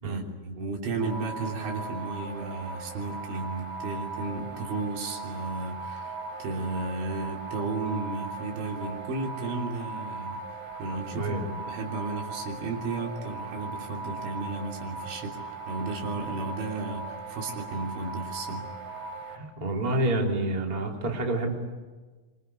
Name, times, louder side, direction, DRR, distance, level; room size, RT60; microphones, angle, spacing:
voice 1, 0.0-10.4 10.8-15.4 15.7-18.7, right 3 dB, 75° right, 1 dB, 5.6 m, -34 dB
sound 1, 1.0-19.4, right 3 dB, 90° right, 7.6 m, -39 dB
voice 2, 11.2-11.5 19.3-21.5, right 2 dB, 10° right, 1 dB, 2.7 m, -28 dB
25.5 x 24.5 x 9.6 m, 1.3 s
omnidirectional pair, 5.4 m